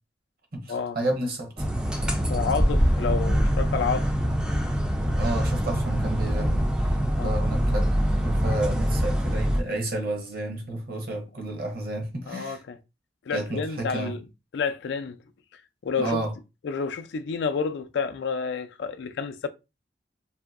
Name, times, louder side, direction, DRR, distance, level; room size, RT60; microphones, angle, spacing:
voice 1, 0.5-1.6 5.2-7.9 8.2-12.6 13.3-14.2 16.0-16.3, right 1 dB, 55° right, 0.9 m, -31 dB
sound 1, 1.6-9.6, equal, 5° right, 0.4 m, -24 dB
voice 2, 2.3-4.1 7.2-7.3 12.3-12.8 13.3-14.2 14.5-15.2 15.5-16.3 16.6-19.5, left 5 dB, 70° left, 0.4 m, -29 dB
2.7 x 2.6 x 2.4 m
head